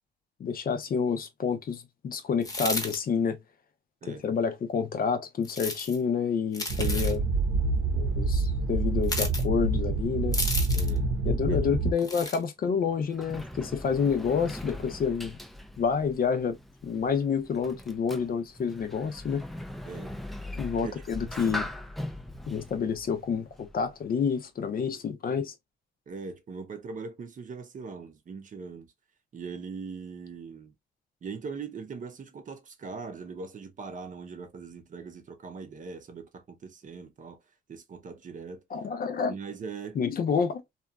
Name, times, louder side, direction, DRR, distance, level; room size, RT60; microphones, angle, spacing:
voice 1, 0.4-3.4 4.1-7.2 7.9-10.4 11.2-15.4 15.8-16.6 16.8-19.4 20.6-21.7 22.5-25.5 38.7-39.4 40.0-40.6, left 6 dB, 50° left, 0.5 m, -28 dB
sound 1, 2.4-3.0 5.4-6.0 6.5-7.2 9.0-9.4 10.3-11.0 12.0-12.4, left 2 dB, 20° left, 0.9 m, -32 dB
sound 2, 6.7-11.9, right 3 dB, 70° right, 0.9 m, -27 dB
voice 2, 6.8-7.1 10.7-11.2 11.5-11.6 19.9-20.1 20.8-21.0 26.1-28.9 29.3-30.7 31.2-37.4 37.7-38.6 39.3-40.0, right 5 dB, 40° right, 0.6 m, -41 dB
Sliding door, 12.6-24.1, left 1 dB, ahead, 0.4 m, -41 dB
2.8 x 2.3 x 2.3 m
cardioid pair, 90°, 20 cm